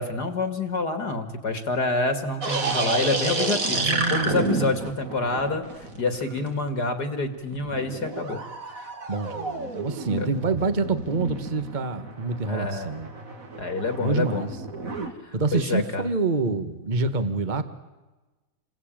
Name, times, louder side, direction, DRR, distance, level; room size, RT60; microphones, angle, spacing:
voice 1, 0.0-8.4 8.8-8.9 10.2-10.3 12.5-12.9 13.6-14.5 15.2-16.0, left 3 dB, 50° left, 8 dB, 2.5 m, -27 dB
sound 1, 2.4-6.7 7.5-15.1, right 3 dB, 40° right, 2.6 m, -30 dB
voice 2, 3.7-4.5 9.1-13.1 14.0-14.5 15.3-17.6, right 3 dB, 25° right, 10 dB, 1.6 m, -27 dB
28.5 x 21.5 x 9.0 m, 1.1 s
omnidirectional pair, 2.4 m